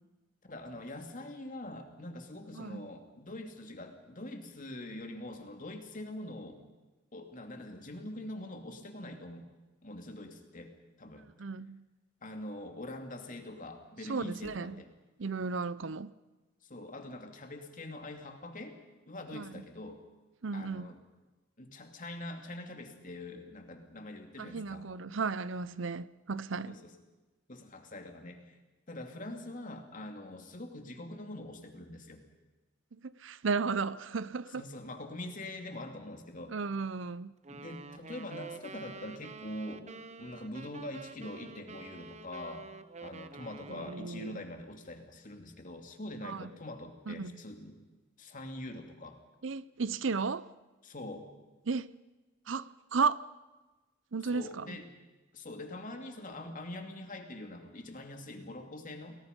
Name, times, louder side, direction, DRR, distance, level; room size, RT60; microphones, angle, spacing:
voice 1, 0.5-6.6 7.1-9.4 9.8-11.3 12.2-14.9 16.6-18.8 19.1-20.0 20.5-21.0 21.6-24.9 26.7-26.9 27.5-28.6 28.9-32.2 34.5-36.5 37.5-39.8 40.2-42.7 43.0-47.8 48.2-49.2 50.8-51.3 54.3-54.9 55.3-59.2, left 1 dB, 40° left, 2.8 m, -44 dB
voice 2, 11.4-11.8 14.1-14.7 15.2-16.1 19.3-19.6 20.4-20.9 24.4-26.8 33.0-34.6 36.5-37.3 43.7-44.3 46.2-46.5 47.1-47.3 49.4-50.5 51.7-51.9 52.5-53.2 54.1-54.8, right 4 dB, 70° right, 0.7 m, -34 dB
sound 1, 37.4-44.3, right 4 dB, 35° right, 0.9 m, -48 dB
29.5 x 20.5 x 5.4 m
head